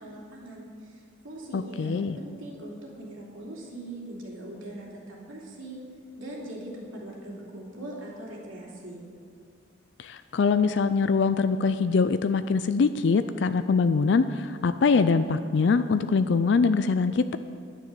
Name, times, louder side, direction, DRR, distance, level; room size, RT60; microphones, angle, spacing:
voice 1, 0.0-5.8 6.2-9.0, right 1 dB, 85° right, -3 dB, 3.1 m, -41 dB
voice 2, 1.5-2.2 10.0-17.4, left 4 dB, 60° left, 11 dB, 0.4 m, -23 dB
11.0 x 9.7 x 6.9 m, 2.3 s
head